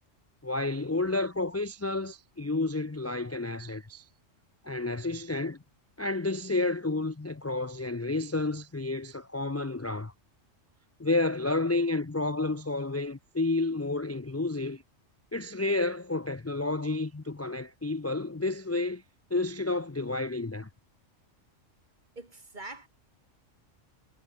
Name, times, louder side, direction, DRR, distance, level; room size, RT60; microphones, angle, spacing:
voice 1, 0.4-4.1 4.6-5.6 6.0-10.1 11.0-14.8 15.3-19.0 19.3-20.7, left 2 dB, 20° left, 0.4 m, -30 dB
voice 2, 22.2-22.9, right 2 dB, 35° right, 2.9 m, -43 dB
omnidirectional pair, 1.3 m